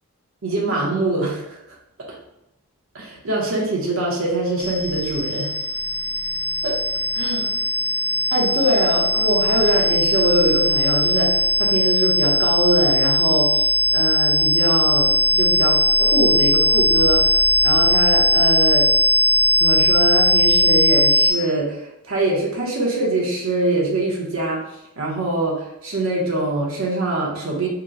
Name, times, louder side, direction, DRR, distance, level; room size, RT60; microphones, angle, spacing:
voice 1, 0.4-1.6 2.0-2.1 2.9-5.5 6.6-6.8 7.1-7.5 8.3-17.3 17.6-18.9 19.6-24.6 25.0-27.7, right 2 dB, 70° right, -3 dB, 0.8 m, -23 dB
sound 1, 4.6-21.3, equal, 45° left, 1.1 m, -19 dB
2.8 x 2.1 x 3.6 m, 0.86 s
head